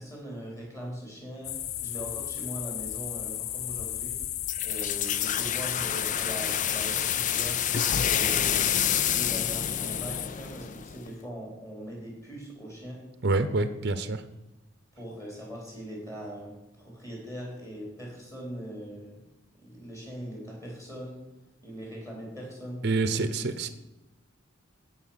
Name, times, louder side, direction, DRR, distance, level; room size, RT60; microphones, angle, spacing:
voice 1, 0.0-1.5 1.8-4.2 4.6-7.6 8.1-8.7 9.0-13.0 13.5-13.6 14.9-16.5 16.8-19.2 19.6-21.2 21.6-22.8, equal, 15° left, -2 dB, 4.0 m, -40 dB
sound 1, 1.4-10.3, left 12 dB, 85° left, 0.6 m, -34 dB
sound 2, 4.5-11.1, left 9 dB, 40° left, 0.4 m, -28 dB
voice 2, 13.2-14.2 22.8-23.7, right 3 dB, 55° right, 11 dB, 0.7 m, -27 dB
16.0 x 5.7 x 5.8 m, 1.0 s
head